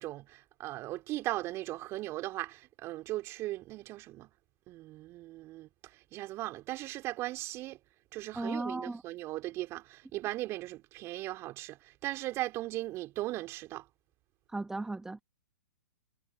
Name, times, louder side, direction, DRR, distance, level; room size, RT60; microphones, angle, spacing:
voice 1, 0.0-4.3 4.7-7.8 8.1-13.9, right 17 dB, 30° right, 3.7 m, -38 dB
voice 2, 8.3-9.0 14.5-15.2, right 2 dB, 5° right, 1.3 m, -36 dB
hypercardioid pair, 120°, 9 cm